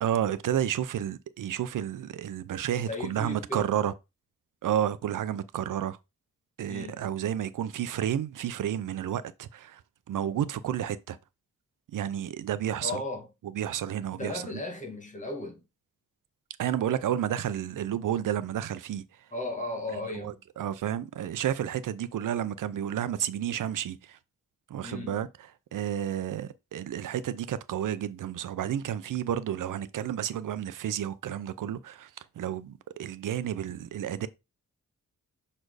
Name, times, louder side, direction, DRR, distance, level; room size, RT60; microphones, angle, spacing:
voice 1, 0.0-3.9 4.6-6.0 6.6-9.8 10.1-11.2 11.9-13.0 13.6-14.4 16.6-19.0 20.2-24.2 24.7-25.3 25.7-32.1 32.4-34.3, right 10 dB, 85° right, 0.6 m, -31 dB
voice 2, 2.8-3.7 6.7-7.0 12.8-13.3 14.1-15.6 19.3-20.4 24.8-25.2, left 2 dB, 25° left, 1.9 m, -36 dB
6.4 x 4.3 x 4.7 m
wide cardioid pair, 170°, 31 cm